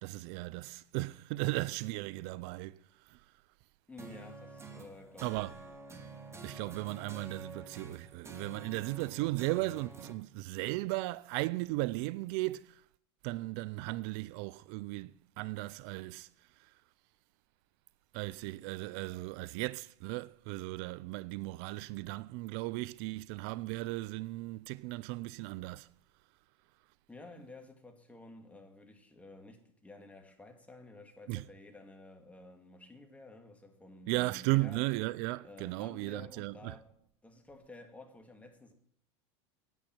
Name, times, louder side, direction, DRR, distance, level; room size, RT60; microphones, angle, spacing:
voice 1, 0.0-3.3 5.2-5.5 6.4-12.8 13.2-16.8 18.1-25.9 31.3-31.4 34.1-36.8, right 20 dB, 60° right, 0.4 m, -36 dB
voice 2, 3.9-5.6 27.1-34.8 35.4-36.9 37.2-38.7, left 2 dB, 10° left, 2.3 m, -52 dB
sound 1, 4.0-10.1, right 3 dB, 15° right, 2.1 m, -48 dB
9.7 x 9.2 x 8.8 m
supercardioid pair, 115°, 15 cm